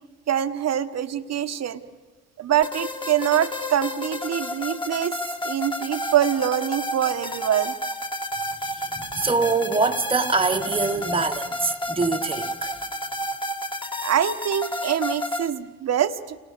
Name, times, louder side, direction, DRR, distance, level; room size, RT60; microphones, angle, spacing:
voice 1, 0.3-1.8 2.4-5.2 5.4-7.7 14.0-16.4, right 10 dB, 60° right, 1.4 m, -24 dB
sound 1, 2.6-15.5, left 1 dB, 15° left, 2.1 m, -31 dB
voice 2, 8.6-12.7, right 4 dB, 20° right, 1.4 m, -24 dB
29.5 x 25.5 x 6.7 m
cardioid pair, 90°, 30 cm